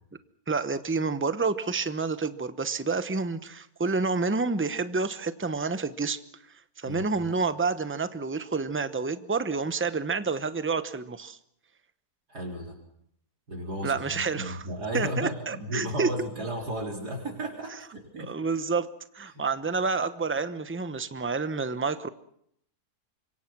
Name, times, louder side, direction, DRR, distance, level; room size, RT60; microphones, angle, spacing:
voice 1, 0.5-6.2 6.8-11.4 13.8-14.6 14.9-16.1 18.3-18.9 19.1-22.1, right 4 dB, 10° right, 12 dB, 0.6 m, -29 dB
voice 2, 12.3-12.8 13.5-18.4 19.3-19.4, equal, 75° right, 1 dB, 4.6 m, -34 dB
26.0 x 23.5 x 6.1 m, 0.70 s
omnidirectional pair, 1.7 m